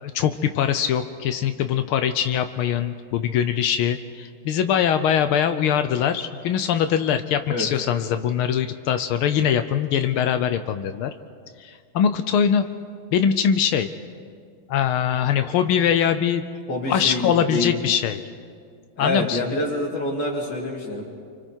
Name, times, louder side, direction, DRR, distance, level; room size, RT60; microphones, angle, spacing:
voice 1, 0.0-11.1 11.6-12.7 13.1-13.9 14.7-16.4 16.9-18.2 19.0-19.4, left 8 dB, 80° left, 9 dB, 1.6 m, -22 dB
voice 2, 16.7-17.7 19.0-21.0, left 2 dB, 55° left, -6 dB, 3.0 m, -26 dB
28.5 x 25.0 x 4.5 m, 2.1 s
omnidirectional pair, 2.3 m